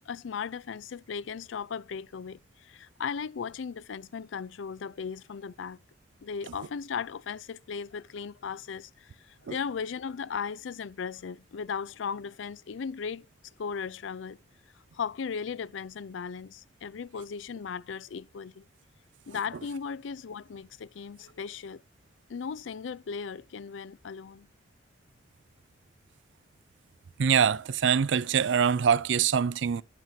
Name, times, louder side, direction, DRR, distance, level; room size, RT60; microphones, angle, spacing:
voice 1, 0.1-5.8 6.2-13.3 13.6-14.4 14.9-18.6 19.3-21.8 22.3-24.5, left 6 dB, 90° left, 0.4 m, -37 dB
voice 2, 27.2-29.8, right 7 dB, 80° right, 0.4 m, -24 dB
12.0 x 7.4 x 2.7 m
head